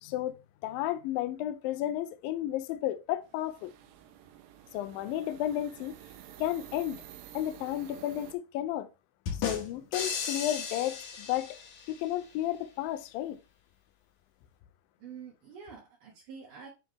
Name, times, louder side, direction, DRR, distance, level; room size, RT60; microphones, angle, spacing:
voice 1, 0.0-3.7 4.7-6.0 6.4-7.0 7.3-8.9 9.4-11.6 11.9-13.4, left 13 dB, 80° left, 2.1 m, -33 dB
sound 1, 3.2-8.4, right 11 dB, 90° right, 2.9 m, -50 dB
sound 2, 9.3-12.1, left 6 dB, 60° left, 2.2 m, -36 dB
voice 2, 15.0-16.7, right 6 dB, 60° right, 2.7 m, -47 dB
9.4 x 3.5 x 3.1 m
omnidirectional pair, 4.7 m